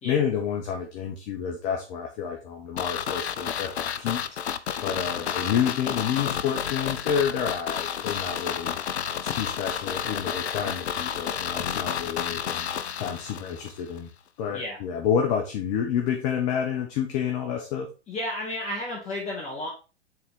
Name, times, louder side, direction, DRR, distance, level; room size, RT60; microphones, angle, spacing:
voice 1, 0.0-8.8 9.2-12.7 13.0-14.1 14.4-17.9, left 8 dB, 40° left, 2 dB, 1.1 m, -29 dB
sound 1, 2.8-13.7 14.0-14.1, left 8 dB, 75° left, 0.6 m, -31 dB
voice 2, 18.1-19.7, left 1 dB, 20° left, -3 dB, 1.5 m, -32 dB
6.6 x 4.0 x 3.7 m, 0.32 s
figure-of-eight pair, 105°, 33 cm